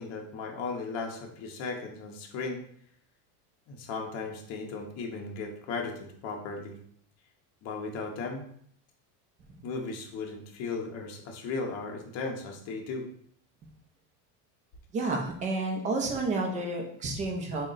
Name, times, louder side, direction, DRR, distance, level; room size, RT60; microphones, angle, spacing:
voice 1, 0.0-2.6 3.7-6.8 7.6-8.4 9.6-13.1, left 4 dB, 35° left, 1 dB, 0.7 m, -36 dB
voice 2, 14.9-17.7, right 2 dB, 20° right, 2 dB, 0.3 m, -30 dB
3.6 x 2.1 x 3.8 m, 0.64 s
supercardioid pair, 150°, 43 cm